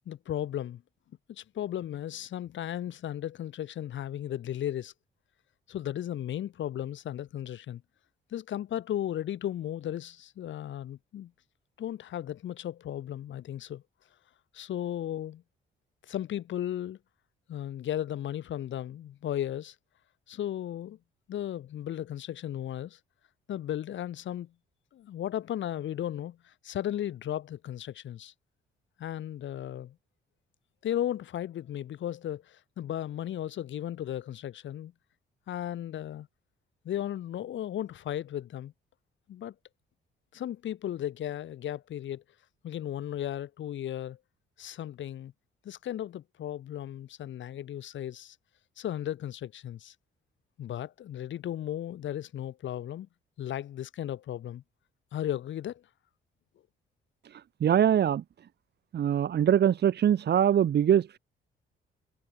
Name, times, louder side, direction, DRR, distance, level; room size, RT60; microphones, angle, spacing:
voice 1, 0.0-0.8 1.3-4.9 5.7-7.8 8.3-11.3 11.8-13.8 14.5-15.4 16.1-17.0 17.5-19.7 20.3-21.0 21.3-23.0 23.5-24.5 24.9-28.3 29.0-30.0 30.8-34.9 35.5-36.3 36.8-38.7 39.3-39.5 40.3-42.2 42.6-44.2 44.6-45.3 45.6-48.4 48.8-49.9 50.6-53.1 53.4-54.6 55.1-55.8, left 11 dB, 70° left, 3.1 m, -35 dB
voice 2, 57.6-58.2 58.9-61.2, right 9 dB, 55° right, 1.4 m, -23 dB
cardioid pair, 90°, 20 cm